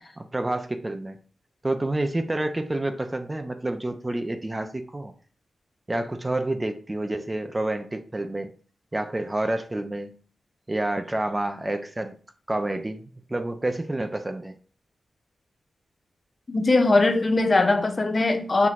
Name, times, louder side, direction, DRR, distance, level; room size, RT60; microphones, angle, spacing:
voice 1, 0.2-1.2 1.6-5.1 5.9-8.5 8.9-10.1 10.7-12.2 12.5-14.5, right 1 dB, 25° right, 0.6 m, -28 dB
voice 2, 16.5-18.7, left 2 dB, 45° left, 0.6 m, -20 dB
5.7 x 3.0 x 2.5 m
cardioid pair, 55°, 0 cm